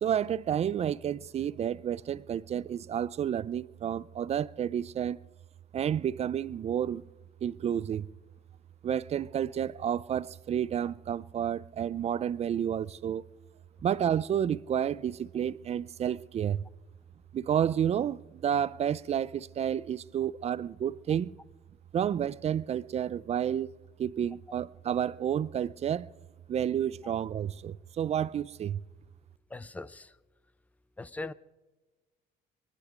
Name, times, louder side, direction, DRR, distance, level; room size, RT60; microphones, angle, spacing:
voice 1, 0.0-5.2 5.7-7.0 7.4-8.1 8.8-13.2 13.8-16.6 17.3-21.3 21.9-23.7 24.0-26.1 26.5-28.8, right 9 dB, 40° right, 0.5 m, -30 dB
voice 2, 29.5-30.2 31.0-31.3, left 2 dB, 10° left, 0.5 m, -40 dB
22.0 x 10.0 x 5.1 m
cardioid pair, 110°, 17 cm